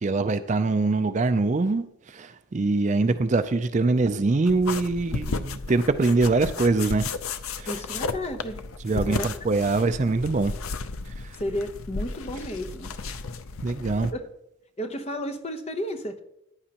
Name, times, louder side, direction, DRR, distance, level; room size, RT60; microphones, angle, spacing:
voice 1, 0.0-7.1 7.6-7.8 8.8-10.5 13.6-14.1, right 3 dB, 35° right, 11 dB, 0.4 m, -23 dB
sound 1, 4.5-14.1, left 4 dB, 85° left, 0.6 m, -34 dB
voice 2, 7.7-8.6 8.9-9.3 11.4-12.9 14.1-14.3 14.8-16.2, equal, 30° left, 6 dB, 0.8 m, -32 dB
14.5 x 9.9 x 2.9 m, 0.80 s
head